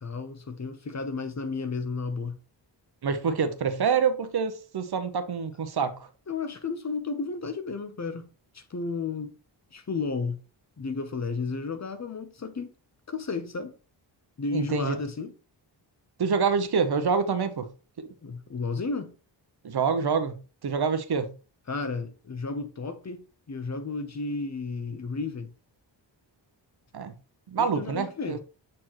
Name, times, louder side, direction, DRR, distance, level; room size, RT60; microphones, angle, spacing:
voice 1, 0.0-2.4 6.3-8.3 8.5-9.3 9.7-10.4 10.8-12.7 13.1-13.7 14.4-15.3 18.2-19.1 21.7-25.5 27.6-28.4, left 4 dB, 40° left, 0.8 m, -33 dB
voice 2, 3.0-6.1 14.5-15.0 16.2-17.7 18.0-18.1 19.6-21.3 26.9-27.1 27.5-28.4, right 5 dB, 60° right, 0.8 m, -26 dB
7.6 x 4.3 x 3.0 m
wide cardioid pair, 110°, 45 cm